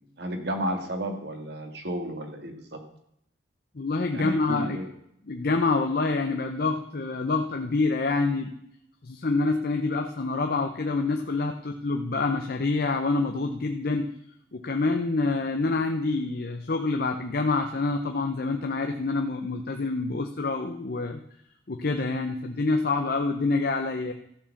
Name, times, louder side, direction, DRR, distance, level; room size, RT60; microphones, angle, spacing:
voice 1, 0.0-2.8 4.1-4.9, equal, 60° right, 4 dB, 1.9 m, -32 dB
voice 2, 3.7-4.8 5.3-8.5 9.0-14.1 14.5-21.2 21.7-24.1, left 3 dB, 55° left, 5 dB, 0.7 m, -27 dB
14.5 x 4.8 x 7.1 m, 0.73 s
head